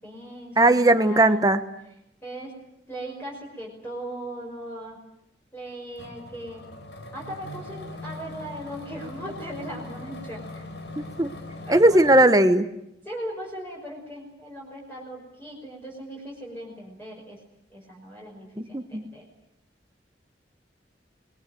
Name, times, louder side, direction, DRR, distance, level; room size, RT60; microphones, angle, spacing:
voice 1, 0.0-1.4 2.2-2.5 2.9-5.0 5.5-6.7 7.1-10.7 11.6-12.2 13.0-17.4 17.7-19.2, right 1 dB, 15° left, -2 dB, 5.6 m, -38 dB
voice 2, 0.6-1.6 11.0-11.3 11.7-12.7 18.7-19.0, right 1 dB, 20° right, 9 dB, 1.1 m, -18 dB
sound 1, 6.0-12.2, left 2 dB, 90° left, 4.3 m, -40 dB
25.5 x 21.0 x 9.2 m, 0.81 s
head